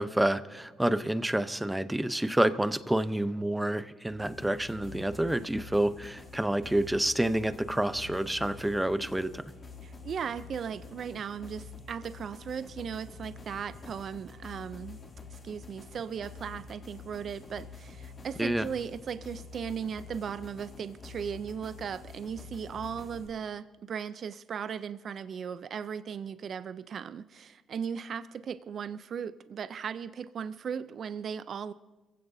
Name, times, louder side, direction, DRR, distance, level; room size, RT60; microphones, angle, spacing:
voice 1, 0.0-9.4 18.4-18.7, right 1 dB, 10° right, 12 dB, 0.7 m, -28 dB
sound 1, 4.1-23.3, left 4 dB, 40° left, 2.6 m, -47 dB
voice 2, 9.8-15.0 15.3-31.7, right 7 dB, 55° right, 14 dB, 0.5 m, -37 dB
27.0 x 16.0 x 2.7 m, 1.2 s
cardioid pair, 90°, 0 cm